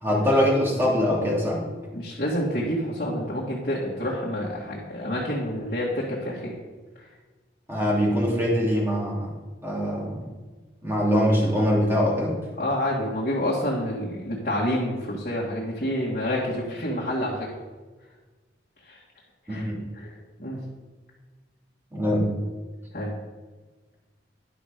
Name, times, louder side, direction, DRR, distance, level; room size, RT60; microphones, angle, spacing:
voice 1, 0.0-1.6 7.7-9.3 9.6-10.2 10.8-12.4 19.5-19.8 21.9-22.3, equal, 15° right, -4 dB, 2.7 m, -23 dB
voice 2, 1.9-6.6 12.6-17.5 18.9-19.0 19.5-19.6 20.0-20.1 20.4-20.6 22.9-23.1, equal, 50° left, -6 dB, 1.9 m, -28 dB
11.0 x 6.1 x 5.1 m, 1.3 s
head